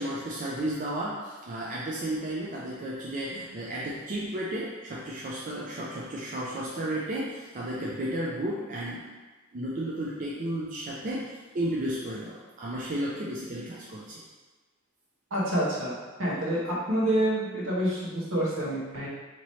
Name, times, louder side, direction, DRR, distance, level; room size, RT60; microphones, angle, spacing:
voice 1, 0.0-9.1 9.5-14.3, right 1 dB, 40° right, -5 dB, 0.4 m, -33 dB
voice 2, 15.3-19.1, right 1 dB, 70° right, -6 dB, 1.1 m, -28 dB
3.1 x 2.9 x 4.1 m, 1.3 s
head